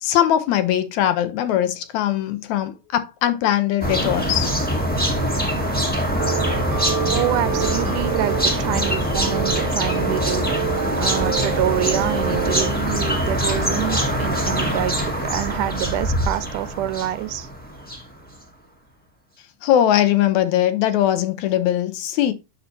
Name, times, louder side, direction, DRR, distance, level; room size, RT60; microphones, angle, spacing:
voice 1, 0.0-4.5 19.6-22.3, left 11 dB, 75° left, 1.9 m, -20 dB
sound 1, 3.8-18.1, equal, 5° left, 0.9 m, -23 dB
sound 2, 6.2-12.7, right 7 dB, 65° right, 1.1 m, -28 dB
voice 2, 7.1-10.5 11.0-17.5, right 14 dB, 85° right, 2.2 m, -26 dB
8.8 x 6.6 x 2.7 m
omnidirectional pair, 3.6 m